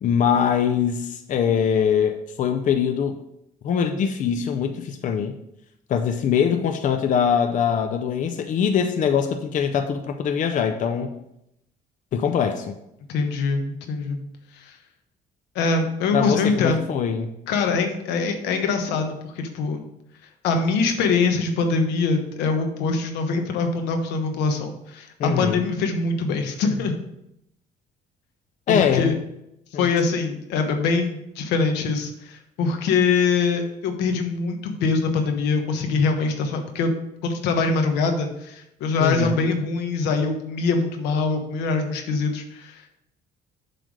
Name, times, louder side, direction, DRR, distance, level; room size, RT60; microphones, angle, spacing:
voice 1, 0.0-3.2 3.6-5.3 5.9-11.1 12.1-12.7 16.1-17.3 25.2-25.6 28.7-29.1 29.7-29.9 39.0-39.4, left 7 dB, 50° left, 7 dB, 0.6 m, -22 dB
voice 2, 13.1-14.2 14.5-14.8 15.5-16.8 17.5-19.9 20.4-27.0 28.7-29.1 29.8-36.9 37.2-42.9, left 4 dB, 90° left, 5 dB, 1.1 m, -23 dB
7.6 x 3.4 x 6.3 m, 0.81 s
cardioid pair, 110°, 17 cm